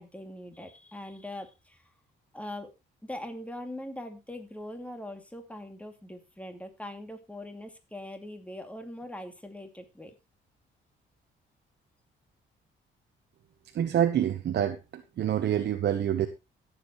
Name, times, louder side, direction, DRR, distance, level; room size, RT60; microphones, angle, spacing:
voice 1, 0.0-1.8 2.3-2.7 3.0-10.1, left 1 dB, 5° left, 5 dB, 2.4 m, -41 dB
voice 2, 13.7-16.3, right 10 dB, 60° right, 7 dB, 1.0 m, -27 dB
17.0 x 7.7 x 3.1 m, 0.25 s
cardioid pair, 90°, 20 cm